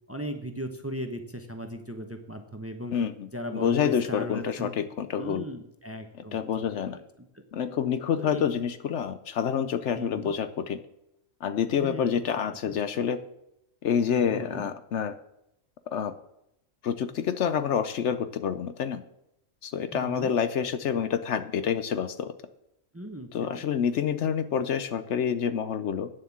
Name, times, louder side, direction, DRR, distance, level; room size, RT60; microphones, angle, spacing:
voice 1, 0.1-2.9 3.3-4.7 5.2-6.4 6.9-7.0 7.3-7.4 8.2-8.4 10.0-10.3 11.8-12.1 12.6-12.8 14.1-14.7 19.9-20.3 22.9-23.6, equal, 15° right, 6 dB, 0.8 m, -37 dB
voice 2, 2.9-5.4 6.3-7.0 7.5-10.8 11.4-13.2 13.8-15.2 15.9-16.1 16.8-19.0 19.6-22.3 23.3-26.1, left 8 dB, 65° left, 12 dB, 0.9 m, -28 dB
9.3 x 7.4 x 7.2 m, 0.83 s
omnidirectional pair, 1.4 m